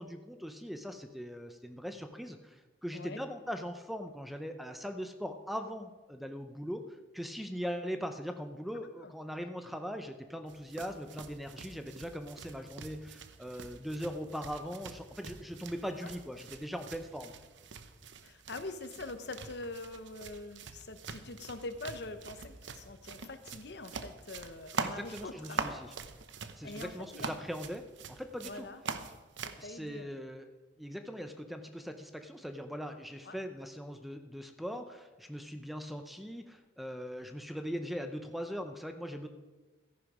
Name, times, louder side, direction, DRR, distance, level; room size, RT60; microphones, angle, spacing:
voice 1, 0.0-6.9 7.1-17.3 24.8-25.9 26.6-28.7 29.6-30.5 30.8-39.3, equal, ahead, 7 dB, 0.6 m, -40 dB
sound 1, 10.5-29.6, right 4 dB, 70° right, 0.8 m, -44 dB
voice 2, 18.2-25.8 26.6-27.4 28.4-28.8 29.4-30.1 33.2-33.4, left 2 dB, 60° left, 9 dB, 0.9 m, -44 dB
14.0 x 10.5 x 4.9 m, 1.2 s
head